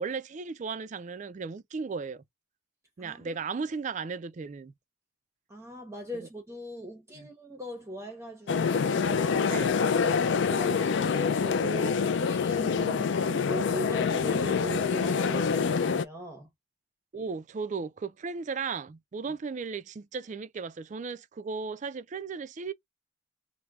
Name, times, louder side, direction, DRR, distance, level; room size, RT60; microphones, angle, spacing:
voice 1, 0.0-2.2 3.0-4.7 6.2-6.3 7.2-7.3 9.5-9.7 12.8-13.1 17.1-22.7, right 5 dB, 35° right, 0.3 m, -36 dB
voice 2, 3.0-3.3 5.5-16.5 19.3-19.4, left 1 dB, 15° right, 0.7 m, -40 dB
sound 1, 8.5-16.0, left 5 dB, 55° left, 0.3 m, -26 dB
3.3 x 2.1 x 3.5 m
head